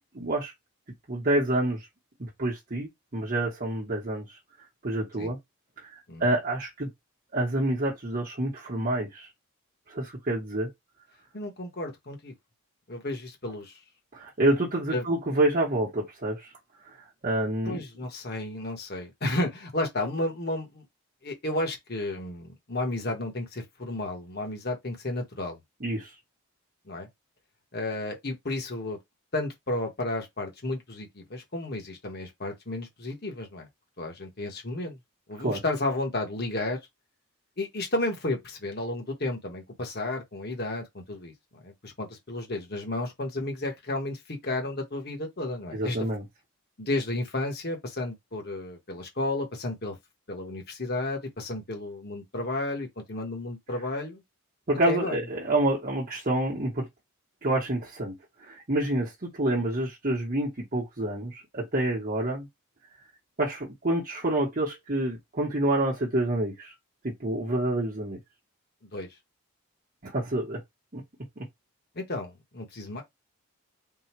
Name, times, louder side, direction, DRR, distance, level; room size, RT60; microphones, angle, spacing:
voice 1, 0.1-0.5 1.1-1.9 2.2-4.4 4.8-5.4 5.9-6.9 7.3-9.3 9.9-10.7 14.1-16.5 17.2-17.8 25.8-26.1 35.4-35.6 45.7-46.2 54.7-56.9 57.4-58.2 58.4-62.5 63.4-66.7 67.0-68.2 70.0-70.6 70.9-71.0 71.4-71.5, right 1 dB, 40° right, 1.0 m, -28 dB
voice 2, 11.3-12.3 12.9-13.8 14.9-15.0 17.6-20.8 21.2-25.6 26.9-27.1 27.7-29.0 29.3-33.7 34.0-35.0 35.3-36.8 37.6-41.3 41.6-46.0 46.8-50.0 50.3-54.2 54.9-55.3 68.9-69.1 71.9-73.0, left 2 dB, 45° left, 1.3 m, -32 dB
3.8 x 2.3 x 4.5 m
head